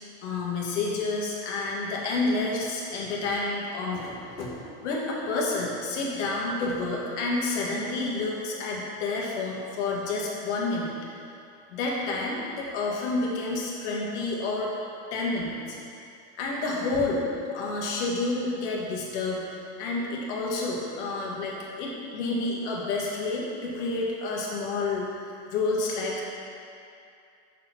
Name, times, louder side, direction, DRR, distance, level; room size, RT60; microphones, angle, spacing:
voice 1, 0.2-4.5 4.8-10.9 11.7-14.7 15.1-15.8 16.4-17.2 17.5-25.1 25.5-26.4, left 3 dB, 75° left, -3 dB, 1.7 m, -29 dB
6.4 x 4.3 x 5.8 m, 2.5 s
supercardioid pair, 140°, 35 cm